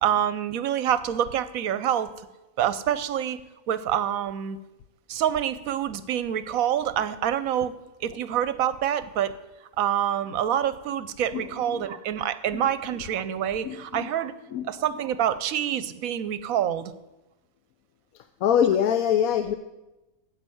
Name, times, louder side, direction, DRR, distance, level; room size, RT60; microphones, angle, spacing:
voice 1, 0.0-2.1 2.6-3.4 3.7-4.6 5.1-9.3 9.8-14.3 14.6-16.9, right 10 dB, 70° right, 14 dB, 1.0 m, -26 dB
voice 2, 11.3-11.8 12.5-12.6 13.6-14.1 14.5-14.7 18.1-19.6, left 9 dB, 70° left, 9 dB, 1.0 m, -24 dB
9.8 x 8.5 x 7.7 m, 1.0 s
omnidirectional pair, 1.6 m